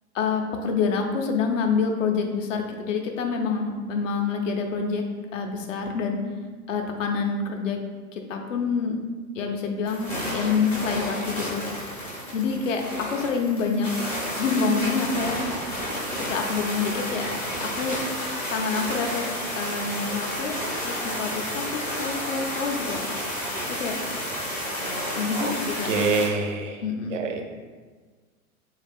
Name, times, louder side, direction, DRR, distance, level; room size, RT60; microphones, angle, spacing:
voice 1, 0.1-5.0 5.3-6.2 6.7-7.8 8.1-9.0 9.3-11.6 12.3-13.9 14.4-15.5 16.2-18.0 18.5-20.6 20.8-23.2 23.8-24.0 25.1-25.9 26.8-27.2, left 5 dB, 60° left, 3 dB, 0.6 m, -27 dB
sound 1, 9.9-26.3, equal, 5° left, 0.4 m, -31 dB
voice 2, 25.8-26.8 27.1-27.4, right 4 dB, 55° right, 4 dB, 0.5 m, -26 dB
3.4 x 2.3 x 3.4 m, 1.4 s
figure-of-eight pair, 100°, 44 cm